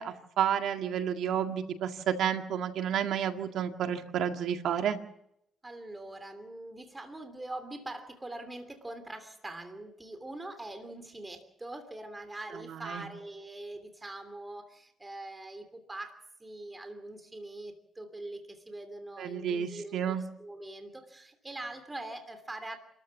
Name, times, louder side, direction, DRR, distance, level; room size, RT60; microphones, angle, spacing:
voice 1, 0.0-5.0 12.8-13.1 19.2-20.2, right 9 dB, 75° right, 6 dB, 1.9 m, -31 dB
voice 2, 5.6-22.8, right 2 dB, 15° right, 8 dB, 2.9 m, -43 dB
28.0 x 14.0 x 7.3 m, 0.77 s
cardioid pair, 90°, 0 cm